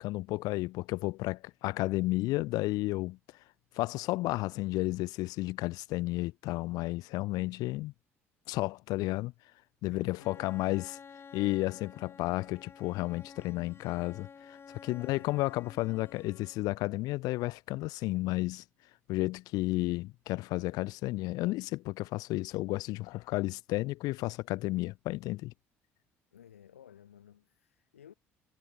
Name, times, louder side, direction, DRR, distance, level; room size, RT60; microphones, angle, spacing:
voice 1, 0.0-3.2 3.7-7.9 8.5-9.3 9.8-11.0 11.3-18.6 19.1-25.5, left 19 dB, 65° left, 1.5 m, -32 dB
voice 2, 9.9-10.6 14.9-15.5 26.3-28.1, left 9 dB, 85° left, 3.6 m, -56 dB
Bowed string instrument, 10.2-16.9, left 6 dB, 35° left, 1.8 m, -52 dB
hypercardioid pair, 55°, 7 cm